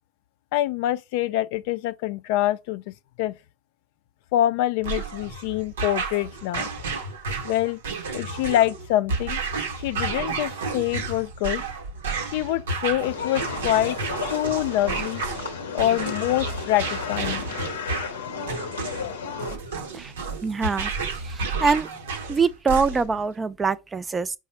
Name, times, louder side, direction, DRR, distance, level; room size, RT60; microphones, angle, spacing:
voice 1, 0.5-3.3 4.3-6.7 7.4-7.8 8.1-9.4 9.8-11.6 12.3-14.0 14.3-15.2 15.7-17.4, left 14 dB, 65° left, 0.3 m, -25 dB
sound 1, 4.8-23.2, right 4 dB, 80° right, 0.7 m, -31 dB
sound 2, 13.0-19.6, left 6 dB, 85° left, 0.7 m, -33 dB
voice 2, 20.4-20.9 21.2-21.9 22.3-24.3, right 5 dB, 20° right, 0.4 m, -24 dB
4.8 x 2.0 x 4.3 m
hypercardioid pair, 80°, 0 cm